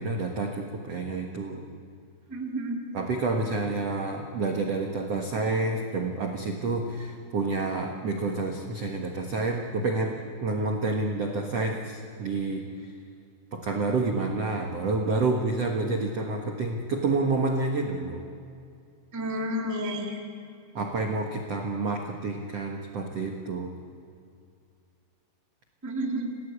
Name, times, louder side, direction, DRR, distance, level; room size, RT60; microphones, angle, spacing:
voice 1, 0.0-1.6 2.9-12.9 13.5-18.2 20.7-23.7, right 3 dB, 85° right, 2 dB, 1.4 m, -29 dB
voice 2, 2.3-2.8 19.1-20.2 25.8-26.3, equal, 15° right, 0 dB, 0.6 m, -30 dB
28.0 x 18.0 x 8.2 m, 2.4 s
omnidirectional pair, 5.6 m